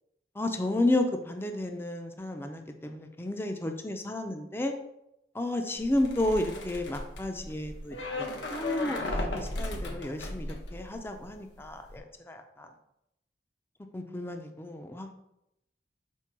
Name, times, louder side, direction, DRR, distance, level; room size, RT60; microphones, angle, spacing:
voice 1, 0.4-4.7 5.3-12.7 13.9-15.1, left 1 dB, 15° left, 5 dB, 0.5 m, -32 dB
sound 1, 5.8-11.3 11.6-12.0, left 2 dB, 90° left, 1.0 m, -36 dB
4.5 x 4.4 x 5.9 m, 0.83 s
head